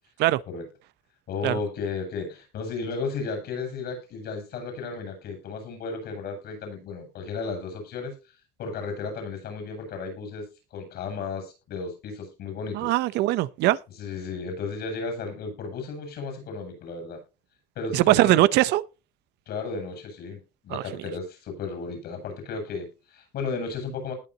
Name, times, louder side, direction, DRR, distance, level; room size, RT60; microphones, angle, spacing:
voice 1, 1.3-8.1 8.6-12.9 14.0-17.2 17.8-18.4 19.5-20.4 20.6-24.1, left 4 dB, 70° left, 7.8 m, -34 dB
voice 2, 12.7-13.8 17.9-18.8 20.7-20.8, right 16 dB, 85° right, 0.8 m, -21 dB
19.5 x 6.8 x 2.9 m
cardioid pair, 110°, 17 cm